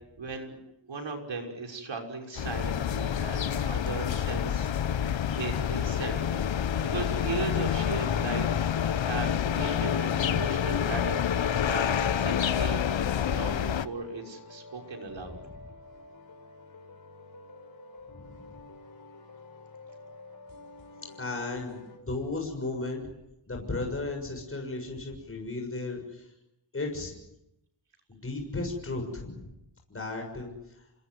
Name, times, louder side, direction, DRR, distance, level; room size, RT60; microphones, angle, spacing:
voice 1, 0.2-0.6 0.9-4.7 5.4-6.5 6.8-8.6 9.0-12.9 13.3-15.4, right 3 dB, 75° right, 2 dB, 6.1 m, -37 dB
sound 1, 2.4-13.9, left 9 dB, 80° left, 1.1 m, -28 dB
sound 2, 8.4-22.0, left 2 dB, 50° left, 5.4 m, -49 dB
voice 2, 18.2-18.6 21.2-23.0 23.5-26.2 26.7-27.2 28.1-29.5 29.9-30.5, left 2 dB, 30° left, 2 dB, 6.8 m, -35 dB
28.5 x 20.5 x 9.6 m, 0.85 s
wide cardioid pair, 150°, 45 cm